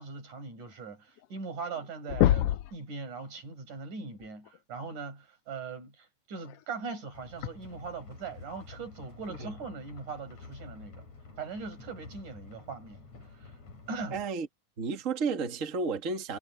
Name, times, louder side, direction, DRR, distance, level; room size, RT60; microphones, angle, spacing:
voice 1, 0.0-11.1 11.4-13.0 13.3-13.5 13.9-14.2, right 4 dB, 90° right, 7.5 m, -40 dB
sound 1, 1.2-1.3 1.6-1.8 2.1-2.8 4.5-4.6 6.4-6.5 7.4-7.5, left 13 dB, 80° left, 1.3 m, -25 dB
sound 2, 7.1-14.3, left 4 dB, 65° left, 5.5 m, -50 dB
voice 2, 14.1-14.5 14.8-16.4, right 4 dB, 30° right, 2.0 m, -32 dB
omnidirectional pair, 3.4 m